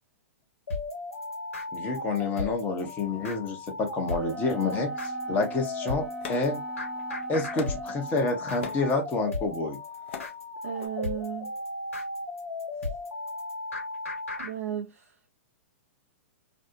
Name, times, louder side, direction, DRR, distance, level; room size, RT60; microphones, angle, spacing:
sound 1, 0.7-14.5, left 2 dB, 80° left, 1.1 m, -35 dB
voice 1, 1.7-6.6 7.3-9.8, left 3 dB, 25° left, 0.7 m, -29 dB
Wind instrument woodwind instrument, 4.1-8.4, right 5 dB, 15° right, 0.6 m, -41 dB
sound 2, 5.5-7.0 7.5-7.9 8.4-8.9 9.7-10.3 10.6-10.9, left 7 dB, 60° left, 0.6 m, -41 dB
voice 2, 10.6-11.5 14.4-15.1, right 10 dB, 70° right, 0.4 m, -35 dB
2.6 x 2.0 x 2.5 m
hypercardioid pair, 110°, 7 cm